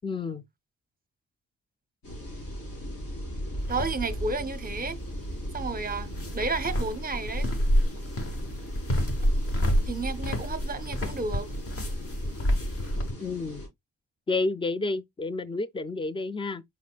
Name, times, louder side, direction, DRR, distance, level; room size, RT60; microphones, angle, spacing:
voice 1, 0.0-0.4 13.2-13.7 14.3-16.6, left 3 dB, 15° left, 0.3 m, -30 dB
sound 1, 2.0-13.7, equal, 80° left, 3.7 m, -36 dB
sound 2, 3.6-13.1, equal, 40° left, 1.1 m, -30 dB
voice 2, 3.7-5.0 5.5-6.1 6.3-7.5 9.9-11.5, right 3 dB, 25° right, 0.6 m, -31 dB
5.2 x 4.1 x 2.3 m
wide cardioid pair, 115°, 34 cm